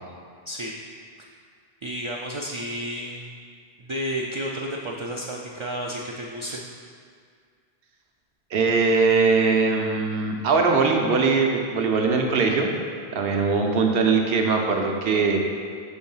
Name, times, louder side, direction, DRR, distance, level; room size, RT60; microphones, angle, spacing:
voice 1, 0.5-0.8 1.8-3.4 3.8-6.7, equal, 50° right, -1 dB, 0.3 m, -31 dB
voice 2, 8.5-12.7 13.1-15.4, right 4 dB, 70° right, 2 dB, 0.9 m, -21 dB
5.2 x 4.4 x 5.5 m, 2.1 s
omnidirectional pair, 1.0 m